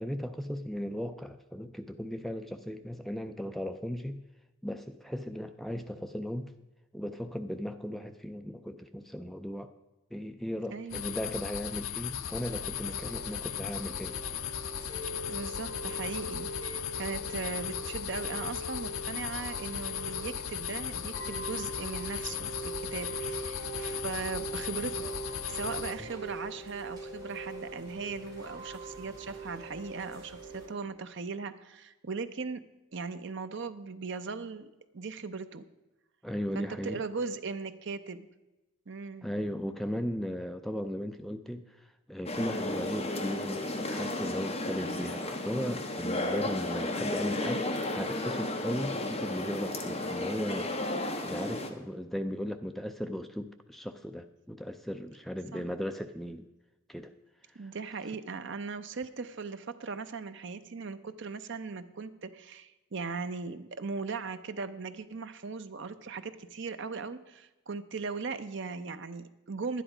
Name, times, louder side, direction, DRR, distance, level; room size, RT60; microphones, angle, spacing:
voice 1, 0.0-4.2 4.6-6.5 6.9-9.7 10.1-14.2 26.0-26.1 36.2-37.0 39.2-50.7 51.0-56.5 56.9-57.1 57.5-57.7, equal, ahead, 7 dB, 0.3 m, -37 dB
voice 2, 10.7-11.1 15.3-25.1 25.5-32.7 32.9-34.7 34.9-35.6 36.5-38.3 38.9-39.3 55.5-55.6 57.5-69.8, right 4 dB, 55° right, 11 dB, 0.6 m, -38 dB
sound 1, 10.9-25.9, left 10 dB, 70° left, 0.5 m, -37 dB
Chime / Rain, 12.3-30.7, right 2 dB, 20° right, 4.0 m, -42 dB
sound 2, 42.3-51.7, left 2 dB, 30° left, 1.1 m, -33 dB
11.5 x 10.0 x 4.9 m, 1.1 s
head